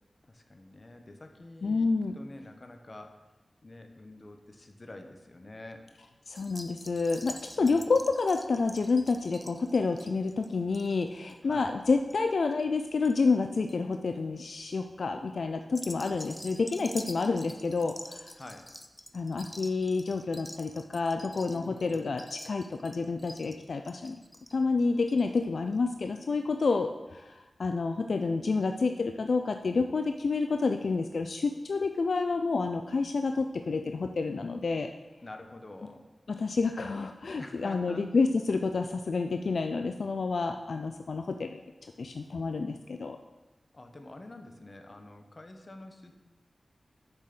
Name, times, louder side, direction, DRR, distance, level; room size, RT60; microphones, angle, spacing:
voice 1, 0.3-3.2 3.6-5.9 7.6-8.0 11.4-11.8 18.4-18.7 21.5-22.2 35.2-36.1 37.4-38.1 43.7-46.3, left 2 dB, 45° left, 5 dB, 1.2 m, -47 dB
voice 2, 1.6-2.2 6.3-18.3 19.1-24.2 24.5-34.9 36.3-41.6 42.0-43.2, left 4 dB, 75° left, 6 dB, 0.4 m, -29 dB
sound 1, 6.4-13.1 13.4-13.9 14.5-14.8 15.6-25.4 25.7-25.8 26.1-26.2, left 1 dB, 15° left, 0.7 m, -47 dB
6.9 x 6.6 x 6.7 m, 1.1 s
cardioid pair, 55°, 0 cm